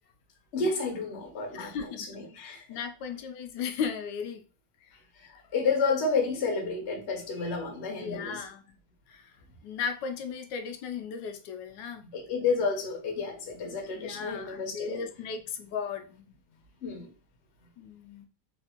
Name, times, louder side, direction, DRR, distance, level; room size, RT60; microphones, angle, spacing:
voice 1, 0.5-2.6 5.2-8.4 12.1-15.0 16.8-17.1, left 4 dB, 55° left, 0.8 m, -30 dB
voice 2, 1.5-2.1 2.4-4.4 4.8-5.0 8.0-8.8 9.1-9.3 9.6-12.1 13.9-16.4 17.8-18.3, left 6 dB, 80° left, 1.2 m, -36 dB
3.3 x 2.4 x 2.8 m
omnidirectional pair, 2.0 m